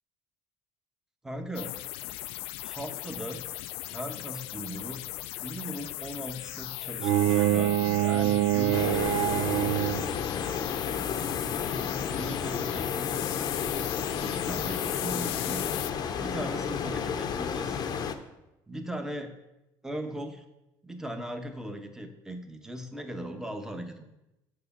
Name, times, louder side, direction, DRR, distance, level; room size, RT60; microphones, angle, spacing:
voice 1, 1.2-1.8 2.6-3.4 3.8-5.0 5.4-9.4 11.6-13.5 14.2-15.6 16.2-17.9 18.7-19.3 19.8-20.4 20.8-24.0, equal, 5° right, 5 dB, 0.9 m, -38 dB
sound 1, 1.5-15.9, left 16 dB, 75° left, 0.4 m, -37 dB
Bowed string instrument, 7.0-10.2, right 14 dB, 75° right, 0.5 m, -25 dB
sound 2, 8.7-18.2, left 7 dB, 45° left, 0.7 m, -32 dB
6.7 x 5.1 x 7.1 m, 0.93 s
cardioid pair, 115°, 10 cm